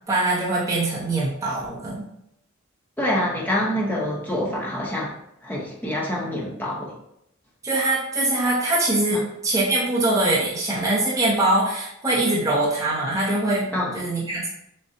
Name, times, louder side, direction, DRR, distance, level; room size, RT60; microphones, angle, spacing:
voice 1, 0.1-2.1 7.6-13.7 13.9-14.5, right 2 dB, 15° right, -7 dB, 0.9 m, -23 dB
voice 2, 3.0-5.1 5.4-6.9 9.1-9.2 13.7-14.0, left 1 dB, 10° left, -5 dB, 0.9 m, -26 dB
6.5 x 2.3 x 2.8 m, 0.79 s
head